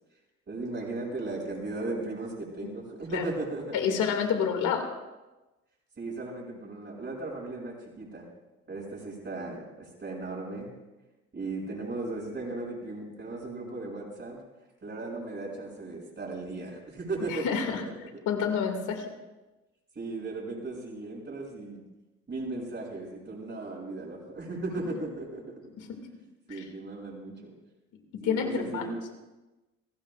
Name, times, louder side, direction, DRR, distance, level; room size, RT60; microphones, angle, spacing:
voice 1, 0.5-3.9 6.0-8.2 8.7-10.7 11.3-14.4 14.8-17.7 20.0-21.8 22.3-25.9 26.5-27.5 28.2-29.0, right 2 dB, 40° right, -2 dB, 7.3 m, -36 dB
voice 2, 3.7-4.9 17.3-17.8 18.3-19.0 25.8-25.9 26.5-26.6 28.1-28.9, left 7 dB, 90° left, 3 dB, 2.6 m, -28 dB
29.5 x 16.0 x 2.6 m, 1.1 s
cardioid pair, 90°, 30 cm